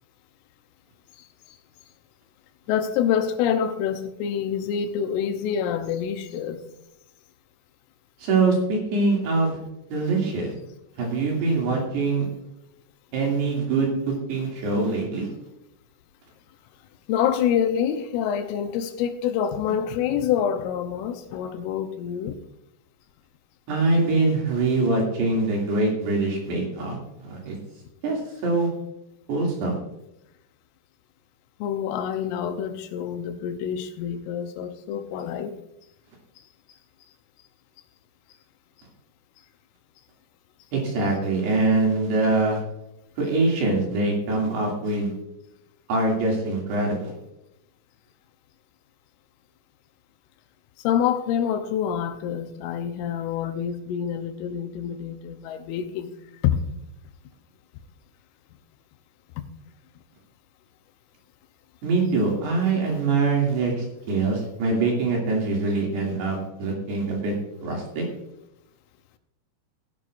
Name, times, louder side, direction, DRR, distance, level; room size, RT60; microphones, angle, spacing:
voice 1, 2.7-6.6 17.1-22.4 31.6-35.6 50.8-56.1 56.4-56.6 59.4-59.5, left 8 dB, 80° left, 7 dB, 3.3 m, -26 dB
voice 2, 8.2-9.6 9.9-10.5 11.0-12.3 13.1-15.3 23.7-27.6 28.0-28.7 29.3-29.8 40.7-42.6 43.2-45.1 45.9-47.1 61.8-67.3 67.6-68.0, right 3 dB, 60° right, -1 dB, 4.3 m, -24 dB
17.0 x 11.0 x 2.5 m, 0.87 s
omnidirectional pair, 5.8 m